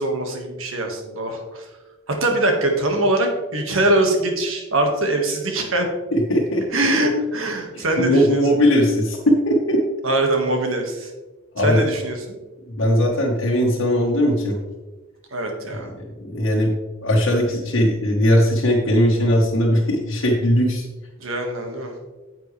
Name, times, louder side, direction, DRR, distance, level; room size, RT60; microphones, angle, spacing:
voice 1, 0.0-1.7 2.1-5.9 6.7-8.4 10.0-11.1 11.6-12.4 15.3-15.9 21.2-21.9, right 1 dB, 75° right, 3 dB, 1.7 m, -22 dB
voice 2, 6.1-6.6 7.7-9.8 11.5-11.8 12.8-14.6 15.7-15.8 16.2-16.7 17.0-20.9, equal, 70° left, -3 dB, 1.3 m, -19 dB
9.4 x 8.1 x 3.3 m, 1.2 s
head